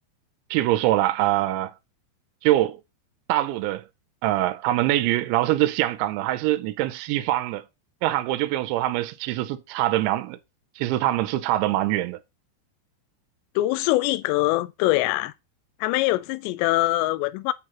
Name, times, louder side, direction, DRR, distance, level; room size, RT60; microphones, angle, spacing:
voice 1, 0.5-1.7 2.4-2.8 3.3-3.9 4.2-7.6 8.0-10.4 10.8-12.2, right 15 dB, 80° right, 2.9 m, -23 dB
voice 2, 13.6-15.3 15.8-17.5, left 18 dB, 80° left, 2.7 m, -23 dB
8.0 x 7.5 x 2.9 m
omnidirectional pair, 5.3 m